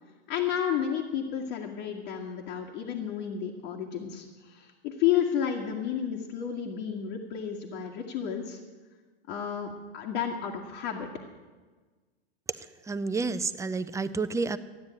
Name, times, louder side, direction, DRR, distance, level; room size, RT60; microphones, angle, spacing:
voice 1, 0.3-8.6 9.3-11.1, left 9 dB, 50° left, -1 dB, 2.0 m, -31 dB
voice 2, 12.9-14.6, right 4 dB, 10° right, 11 dB, 0.6 m, -30 dB
14.5 x 9.6 x 8.8 m, 1.4 s
hypercardioid pair, 100°, 31 cm